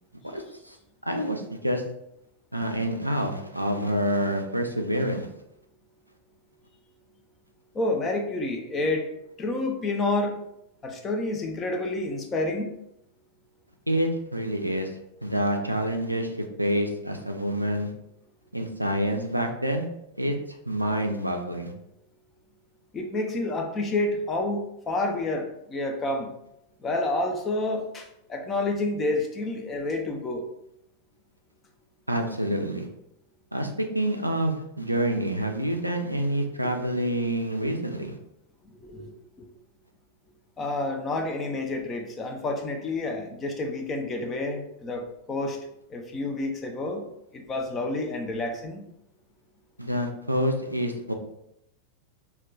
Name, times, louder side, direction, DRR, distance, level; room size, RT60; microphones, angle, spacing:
voice 1, 0.2-0.8 1.0-1.8 2.5-5.3 13.9-14.9 15.2-17.9 18.5-19.9 20.2-20.3 20.7-21.7 32.1-32.9 33.5-38.2 49.8-51.1, equal, 90° right, 4 dB, 0.3 m, -27 dB
voice 2, 7.7-9.1 9.4-10.4 10.8-12.7 22.9-26.3 26.8-30.5 38.7-39.5 40.6-45.6 45.9-47.0 47.3-48.8, left 2 dB, 25° left, 3 dB, 0.5 m, -29 dB
2.3 x 2.2 x 3.7 m, 0.80 s
figure-of-eight pair, 90°, 0 cm